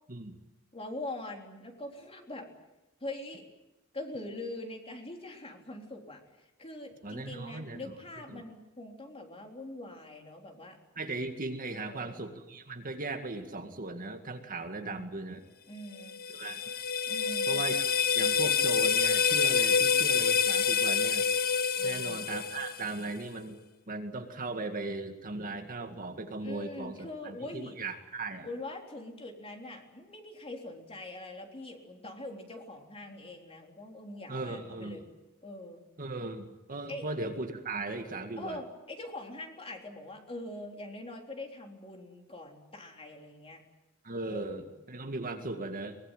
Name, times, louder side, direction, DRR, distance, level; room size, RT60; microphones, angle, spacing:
voice 1, 0.7-2.5 3.0-3.4 3.9-10.8 11.7-12.3 14.8-15.2 15.7-16.2 17.1-17.6 21.8-22.3 26.4-27.8 28.4-35.0 35.4-35.8 36.9-37.1 38.4-43.6 44.3-44.8, left 1 dB, 25° left, 2 dB, 3.7 m, -43 dB
voice 2, 7.0-7.9 8.3-8.4 11.0-15.4 16.3-16.6 17.5-17.9 18.1-21.3 21.8-23.6 23.9-28.5 34.3-35.0 36.0-38.6 44.0-46.0, right 2 dB, 40° right, 5 dB, 2.1 m, -38 dB
sound 1, 16.0-23.1, left 6 dB, 45° left, 0.9 m, -27 dB
23.5 x 21.5 x 9.1 m, 0.98 s
head